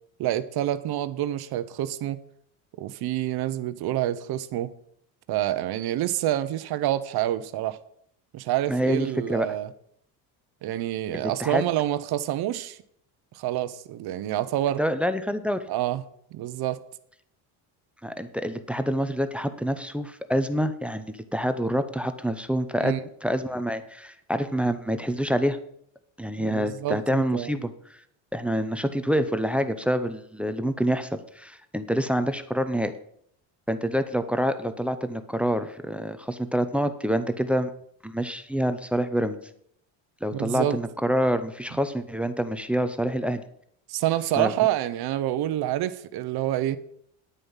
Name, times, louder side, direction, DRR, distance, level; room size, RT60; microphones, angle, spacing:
voice 1, 0.2-2.2 2.8-4.7 5.3-7.8 8.3-9.7 10.6-12.8 13.3-14.8 15.7-16.0 16.3-16.8 22.8-23.0 26.4-27.5 40.3-40.8 43.9-46.8, right 13 dB, 60° right, 1.0 m, -27 dB
voice 2, 8.7-9.5 11.1-11.6 14.8-15.6 18.0-21.1 21.3-25.6 26.2-28.0 28.3-32.9 33.7-37.7 38.0-39.4 40.2-43.4 44.4-44.5, equal, 5° right, 0.7 m, -27 dB
9.9 x 9.1 x 5.6 m
cardioid pair, 120°, 44 cm